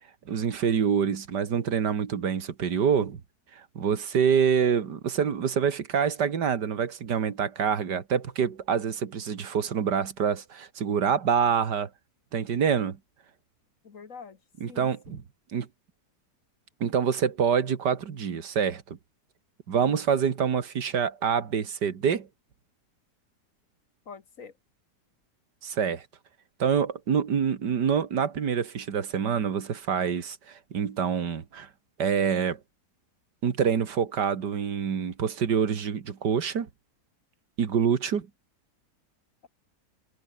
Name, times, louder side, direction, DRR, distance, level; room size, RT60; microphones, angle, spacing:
voice 1, 0.3-3.2 3.5-11.9 12.3-13.0 14.6-15.2 15.5-15.7 16.8-19.0 19.7-22.3 25.6-26.0 26.6-31.7 32.0-32.6 33.4-36.7 37.6-38.3, right 7 dB, 90° right, 2.3 m, -26 dB
voice 2, 13.8-14.4 14.7-15.2 19.8-20.0 24.1-24.5, left 5 dB, 55° left, 1.9 m, -45 dB
omnidirectional pair, 1.8 m